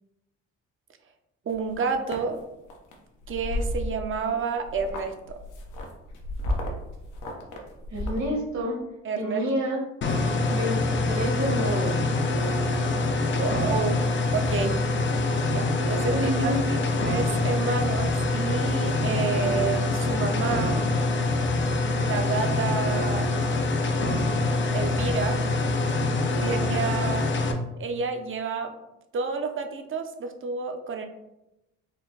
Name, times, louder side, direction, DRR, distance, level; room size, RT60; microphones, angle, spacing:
sound 1, 1.5-2.2 2.7-2.9 3.2-4.4 4.6-8.3, left 1 dB, 85° left, 0.9 m, -32 dB
voice 1, 1.5-2.4 3.3-5.4 9.0-9.4 12.9-14.8 15.5-20.8 22.0-23.3 24.7-25.4 26.4-27.3 27.8-28.7 29.1-31.1, right 5 dB, 45° right, 6 dB, 0.6 m, -30 dB
voice 2, 7.9-8.8 9.1-9.8 10.5-12.0 16.1-16.6, equal, 65° right, -1 dB, 1.4 m, -28 dB
sound 2, 10.0-27.5, left 2 dB, 40° left, 0.6 m, -25 dB
4.4 x 2.2 x 3.8 m, 0.92 s
cardioid pair, 90°, 30 cm